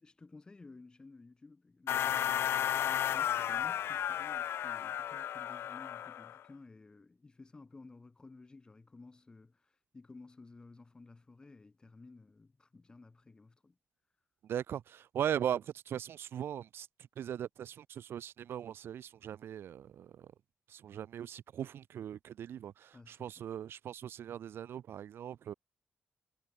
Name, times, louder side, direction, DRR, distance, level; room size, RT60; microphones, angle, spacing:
voice 1, 0.0-13.8 22.9-23.4, left 3 dB, 20° left, 6.6 m, -55 dB
sound 1, 1.9-6.4, left 10 dB, 85° left, 2.2 m, -33 dB
voice 2, 14.5-16.9 17.2-20.3 20.7-25.5, right 9 dB, 75° right, 2.9 m, -39 dB
wide cardioid pair, 155°, 4 cm